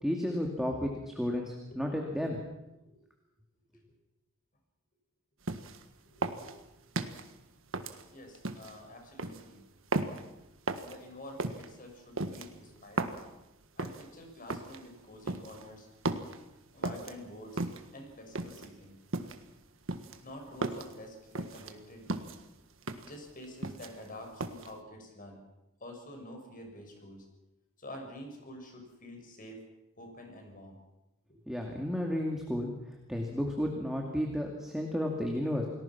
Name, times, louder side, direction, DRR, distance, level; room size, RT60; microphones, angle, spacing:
voice 1, 0.0-2.4 31.5-32.7 33.1-35.7, equal, ahead, 1 dB, 2.4 m, -32 dB
sound 1, 5.5-5.8 6.2-7.3 7.7-8.7 9.2-9.4 9.9-10.3 10.7-11.0 11.4-11.7 12.2-13.3 13.8-14.1 14.5-14.8 15.3-15.6 16.0-16.4 16.8-17.1 17.6-17.9 18.3-18.7 19.1-19.5 19.9-20.9 21.3-21.7 22.1-22.4 22.8-23.1 23.4-24.1 24.4-24.7, right 2 dB, 70° right, 1.6 m, -35 dB
voice 2, 6.0-6.5 8.1-9.6 10.8-13.2 13.8-15.9 16.7-17.7 17.9-18.9 20.2-22.3 23.0-25.4 25.8-27.2 27.8-29.6 30.0-30.8, left 1 dB, 40° left, 3 dB, 5.9 m, -48 dB
29.0 x 19.5 x 6.0 m, 0.93 s
head